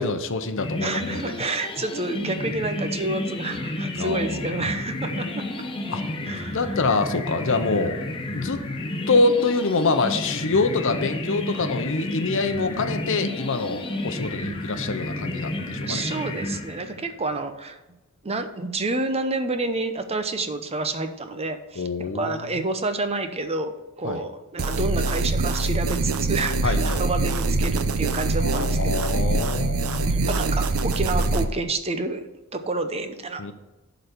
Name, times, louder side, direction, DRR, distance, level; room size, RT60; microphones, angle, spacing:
voice 1, 0.0-1.2 4.0-4.4 5.9-6.0 6.5-8.0 8.3-8.6 9.1-16.0 21.8-22.4 24.0-24.2 26.6-27.0 28.4-30.1 33.4-33.5, left 3 dB, 65° left, 9 dB, 0.8 m, -25 dB
sound 1, 0.6-17.2, left 1 dB, 25° left, 1.0 m, -31 dB
voice 2, 0.8-5.4 6.2-6.6 15.8-17.8 18.2-29.0 30.1-32.3 32.5-33.5, right 2 dB, 30° right, 8 dB, 0.7 m, -29 dB
sound 2, 24.6-31.5, right 3 dB, 85° right, 0.7 m, -24 dB
11.5 x 4.0 x 6.7 m, 1.1 s
head